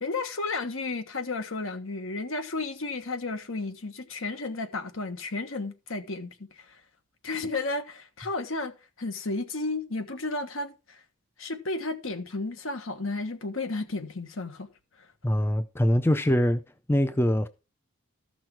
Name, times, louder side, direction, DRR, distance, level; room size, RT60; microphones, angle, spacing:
voice 1, 0.0-6.8 7.2-8.7 9.0-11.0 11.4-14.7 15.0-15.1, left 3 dB, 70° left, 1.3 m, -33 dB
voice 2, 15.2-16.6 16.9-17.5, equal, 10° left, 0.4 m, -23 dB
14.0 x 6.1 x 4.6 m
head